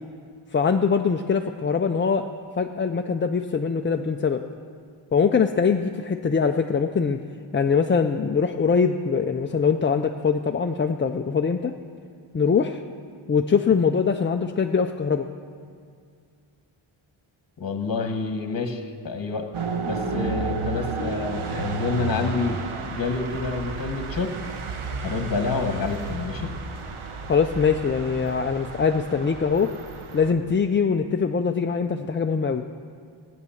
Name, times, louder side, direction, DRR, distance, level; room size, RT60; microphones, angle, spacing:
voice 1, 0.5-2.3 2.6-4.4 5.1-7.2 7.5-11.7 12.3-12.8 13.3-15.3 27.3-29.7 30.1-32.6, left 5 dB, 25° left, 4 dB, 0.4 m, -22 dB
voice 2, 17.6-19.5 19.8-22.6 22.9-24.3 25.0-26.5, left 4 dB, 45° left, 6 dB, 1.2 m, -28 dB
sound 1, 19.5-30.3, right 3 dB, 75° right, 1.2 m, -32 dB
16.5 x 9.5 x 7.1 m, 2.2 s
wide cardioid pair, 155°, 50 cm